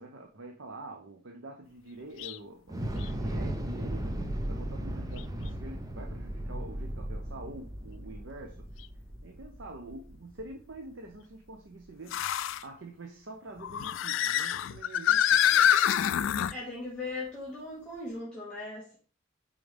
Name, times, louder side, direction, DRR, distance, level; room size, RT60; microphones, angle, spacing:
voice 1, 0.0-8.8 9.2-12.3 12.6-15.8, right 2 dB, 65° right, 0.7 m, -46 dB
sound 1, 2.2-2.4 3.0-3.1 5.2-5.3 8.8-8.9 12.1-12.6 13.6-16.5, left 10 dB, 65° left, 0.3 m, -26 dB
Thunder / Explosion, 2.7-10.9, right 1 dB, 15° right, 0.6 m, -36 dB
voice 2, 16.5-19.0, left 2 dB, 5° left, 1.6 m, -38 dB
8.8 x 3.8 x 3.4 m
head